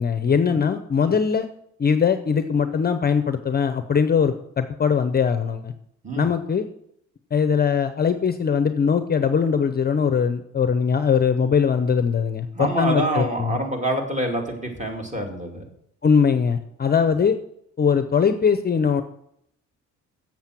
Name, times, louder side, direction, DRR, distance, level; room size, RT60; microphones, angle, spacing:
voice 1, 0.0-1.5 1.8-5.7 6.2-6.6 7.3-13.5 16.0-17.4 17.8-19.0, left 6 dB, 30° left, 9 dB, 0.6 m, -21 dB
voice 2, 12.5-15.6, right 1 dB, 25° right, 2 dB, 2.4 m, -26 dB
7.4 x 7.3 x 6.0 m, 0.74 s
cardioid pair, 90°, 30 cm